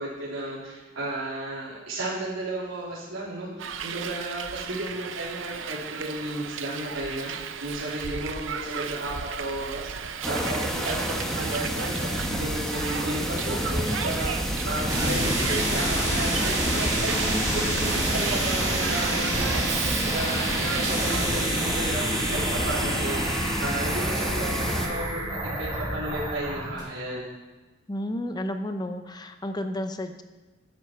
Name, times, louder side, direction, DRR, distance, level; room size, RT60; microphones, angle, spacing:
voice 1, 0.0-7.3 7.6-27.3, right 1 dB, 90° right, -8 dB, 3.5 m, -33 dB
Hiss, 3.6-21.3, right 7 dB, 70° right, 0.7 m, -35 dB
sound 1, 10.2-24.9, equal, 5° left, 1.3 m, -30 dB
sound 2, 14.9-26.8, right 1 dB, 25° right, 4.2 m, -28 dB
voice 2, 27.9-30.2, left 1 dB, 20° left, 7 dB, 0.7 m, -32 dB
13.0 x 10.5 x 4.5 m, 1.2 s
head